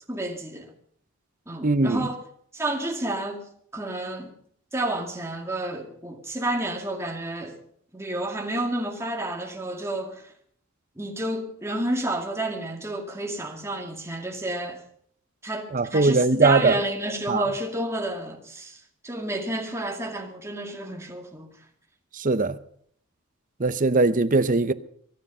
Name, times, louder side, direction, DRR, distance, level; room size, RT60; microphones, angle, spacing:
voice 1, 0.1-0.7 1.5-2.2 2.5-4.3 4.7-7.6 7.9-10.3 11.0-14.8 15.4-21.5, right 1 dB, 15° right, 2.2 m, -30 dB
voice 2, 1.6-2.1 15.7-16.7 17.3-17.4 22.1-22.6 23.6-24.7, right 3 dB, 40° right, 0.7 m, -21 dB
24.0 x 10.0 x 5.6 m
head